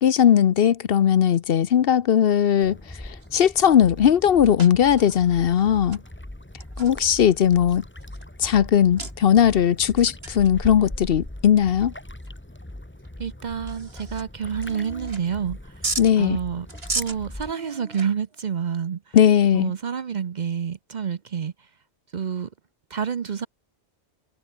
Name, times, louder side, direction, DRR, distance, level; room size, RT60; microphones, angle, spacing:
voice 1, 0.0-6.0 6.8-7.8 8.4-11.9 16.0-16.4 19.1-19.7, left 9 dB, 60° left, 0.9 m, -18 dB
sound 1, 1.3-1.8 2.6-2.7 3.1-3.6 4.1-4.2 4.6-6.1 6.6-8.5 9.0-9.1 10.2-10.5 10.9-11.0 11.6-11.7 12.2-12.3 13.0-13.1 13.5-14.2 14.6-15.5 15.8-16.1 16.7-18.4, right 3 dB, 65° right, 3.3 m, -35 dB
sound 2, 2.6-17.5, left 1 dB, 10° left, 1.6 m, -40 dB
voice 2, 13.2-15.8 16.2-16.7 17.0-19.2 19.5-21.5 22.1-22.5 22.9-23.5, right 7 dB, 50° right, 0.7 m, -28 dB
omnidirectional pair, 1.1 m